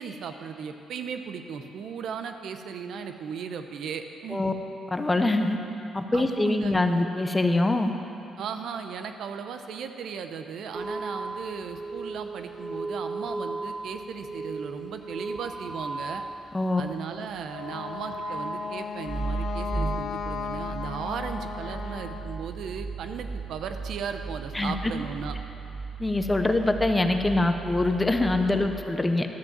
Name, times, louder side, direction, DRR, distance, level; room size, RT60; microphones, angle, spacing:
voice 1, 0.0-4.4 6.1-6.8 8.4-16.2 16.8-25.4, right 6 dB, 70° right, 7 dB, 0.6 m, -36 dB
voice 2, 4.9-5.6 5.9-7.9 16.5-16.8 24.5-24.9 26.0-29.3, left 2 dB, 15° left, 6 dB, 0.7 m, -24 dB
sound 1, 10.7-17.0 17.3-28.7, right 3 dB, 25° right, 0.6 m, -36 dB
Wind instrument woodwind instrument, 17.4-22.4, left 6 dB, 70° left, 0.7 m, -36 dB
12.0 x 5.3 x 7.2 m, 3.0 s
cardioid pair, 90°, 0 cm